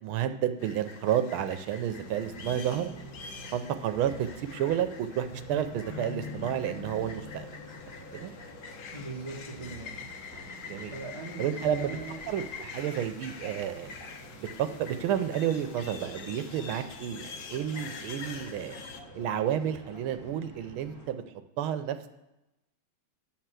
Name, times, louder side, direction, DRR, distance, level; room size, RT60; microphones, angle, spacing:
voice 1, 0.0-2.9 3.5-7.6 8.1-8.3 10.6-10.9 11.4-12.0 12.3-13.9 14.4-18.8 19.2-21.2 21.6-22.1, right 10 dB, 80° right, 9 dB, 1.5 m, -31 dB
sound 1, 0.6-19.0, left 6 dB, 70° left, 0.7 m, -45 dB
sound 2, 1.9-21.1, equal, 10° left, 2.3 m, -47 dB
voice 2, 8.9-10.5 10.9-12.2, right 2 dB, 20° right, -3 dB, 1.1 m, -40 dB
10.5 x 4.5 x 7.5 m, 0.94 s
omnidirectional pair, 2.3 m